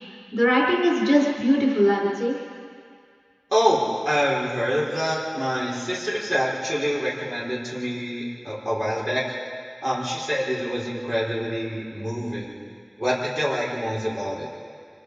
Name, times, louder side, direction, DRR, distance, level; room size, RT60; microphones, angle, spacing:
voice 1, 0.3-2.4, equal, 5° left, -4 dB, 5.4 m, -20 dB
voice 2, 3.5-9.4 9.8-12.5 13.0-14.5, equal, 35° right, -6 dB, 4.9 m, -26 dB
27.0 x 23.0 x 5.0 m, 2.2 s
wide cardioid pair, 45°, 0 cm